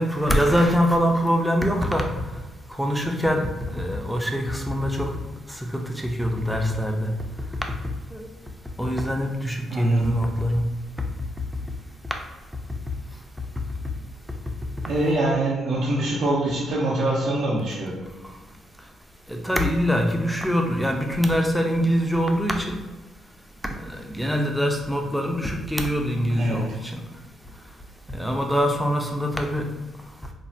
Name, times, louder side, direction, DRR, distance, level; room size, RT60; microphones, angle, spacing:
voice 1, 0.0-2.1 2.8-5.1 5.7-7.1 8.1-8.2 8.8-10.6 19.3-22.7 24.1-26.7 26.9-27.0 28.2-29.7, equal, ahead, 2 dB, 0.4 m, -23 dB
voice 2, 9.7-10.2 14.9-18.1 26.3-26.8, right 1 dB, 70° right, -6 dB, 0.5 m, -24 dB
3.1 x 2.1 x 2.6 m, 1.2 s
cardioid pair, 90°, 0 cm